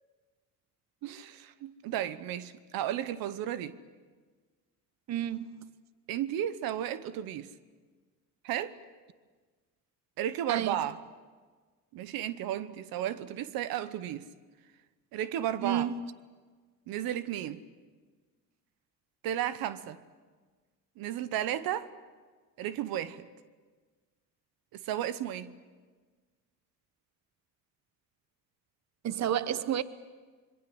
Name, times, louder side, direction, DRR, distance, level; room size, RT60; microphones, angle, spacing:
voice 1, 1.0-3.7 6.1-7.5 8.4-8.7 10.2-11.0 11.9-14.3 15.1-15.9 16.9-17.6 19.2-20.0 21.0-21.9 22.6-23.3 24.7-25.5, right 11 dB, 85° right, 1.1 m, -33 dB
voice 2, 5.1-5.7 10.5-10.8 15.6-16.0 29.0-29.8, right 10 dB, 50° right, 1.0 m, -31 dB
26.0 x 23.0 x 7.9 m
cardioid pair, 95°, 35 cm